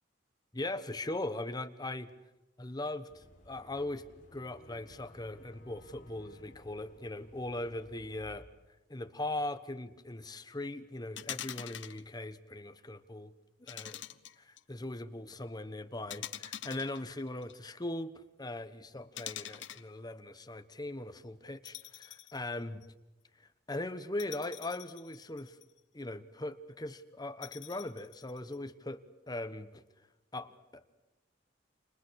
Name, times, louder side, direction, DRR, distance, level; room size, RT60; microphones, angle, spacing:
voice 1, 0.5-2.1 2.6-4.1 4.3-8.5 8.9-13.3 13.6-14.0 14.4-22.8 23.7-25.6 25.9-29.8 30.3-30.9, left 2 dB, 20° left, 10 dB, 1.2 m, -40 dB
Boat Water vehicle / Engine, 3.1-8.4, left 1 dB, 45° left, 5.7 m, -58 dB
sound 1, 11.2-12.0 13.7-14.6 16.1-17.5 19.2-19.9 21.6-22.4 22.8-22.9 24.2-25.8 27.4-28.6, left 11 dB, 70° left, 0.9 m, -44 dB
29.5 x 26.5 x 6.5 m, 1.1 s
head